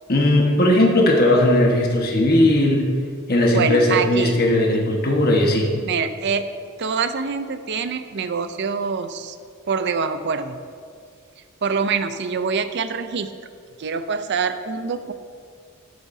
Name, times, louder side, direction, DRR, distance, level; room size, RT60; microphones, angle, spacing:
voice 1, 0.1-2.9 3.3-5.7, left 1 dB, 45° left, -1 dB, 1.4 m, -17 dB
voice 2, 3.5-4.4 5.8-6.5 6.8-9.4 9.7-10.6 11.6-13.3 13.8-15.1, right 5 dB, 50° right, 10 dB, 0.5 m, -25 dB
13.5 x 11.0 x 2.7 m, 2.2 s
head